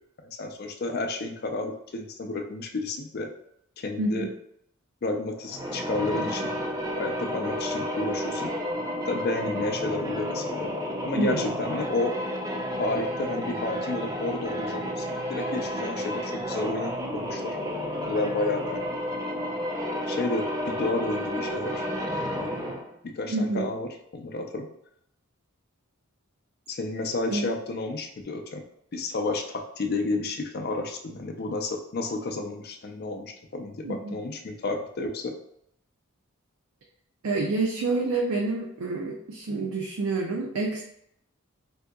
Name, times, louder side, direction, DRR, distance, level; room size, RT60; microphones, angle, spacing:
voice 1, 0.4-3.3 3.8-4.3 5.0-6.5 7.0-8.5 9.1-10.7 11.0-12.2 12.8-17.6 18.0-18.8 20.1-21.9 22.4-22.7 23.0-24.7 26.7-28.6 28.9-35.4, left 2 dB, 50° left, 4 dB, 0.4 m, -31 dB
voice 2, 4.0-4.3 11.1-11.6 23.3-23.7 27.3-27.5 33.8-34.1 37.2-40.8, right 3 dB, 80° right, 0 dB, 0.4 m, -28 dB
sound 1, 5.4-22.9, equal, 15° right, 0.4 m, -31 dB
3.6 x 2.7 x 2.3 m, 0.74 s
head